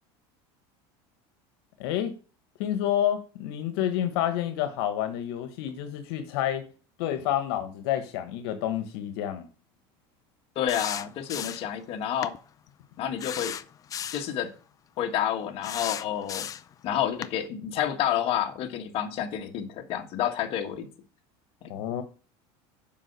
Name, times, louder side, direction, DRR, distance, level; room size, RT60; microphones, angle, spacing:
voice 1, 1.8-2.1 2.6-6.7 7.0-9.5 21.7-22.0, left 11 dB, 80° left, 1.3 m, -29 dB
voice 2, 10.5-12.3 13.0-13.5 14.1-14.5 15.0-16.5 16.8-20.9, left 10 dB, 45° left, 1.5 m, -29 dB
sound 1, 10.7-11.8 12.2-12.4 13.2-14.3 15.6-16.7 17.2-17.4, left 9 dB, 25° left, 0.5 m, -35 dB
7.4 x 5.8 x 6.7 m
supercardioid pair, 140°, 13 cm